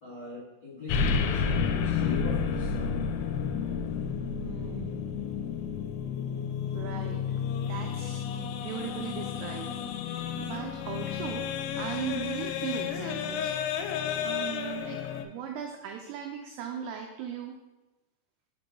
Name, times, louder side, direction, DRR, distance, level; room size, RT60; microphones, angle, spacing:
voice 1, 0.0-3.1, left 3 dB, 55° left, -12 dB, 1.2 m, -39 dB
sound 1, 0.9-15.2, left 6 dB, 90° left, 2.9 m, -31 dB
voice 2, 4.4-5.0 6.7-9.7 10.0-11.5 11.8-13.5 14.2-17.6, right 8 dB, 90° right, 3 dB, 2.3 m, -38 dB
6.0 x 4.7 x 3.7 m, 1.1 s
omnidirectional pair, 5.2 m